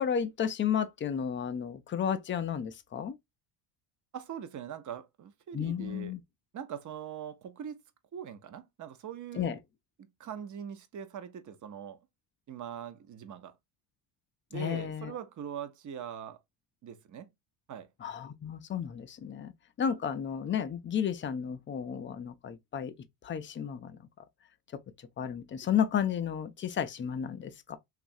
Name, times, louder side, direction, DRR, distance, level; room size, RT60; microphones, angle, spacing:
voice 1, 0.0-3.2 5.5-6.2 9.3-9.6 14.5-15.1 18.0-19.5 19.8-22.9 23.2-24.1 24.7-24.8 25.2-27.8, left 8 dB, 25° left, 0.4 m, -32 dB
voice 2, 4.1-6.1 6.5-7.8 8.1-9.6 10.0-12.0 12.5-13.6 14.5-16.4 16.8-17.3 17.7-17.9, right 8 dB, 40° right, 0.7 m, -42 dB
3.0 x 2.4 x 2.6 m
supercardioid pair, 80°, 48 cm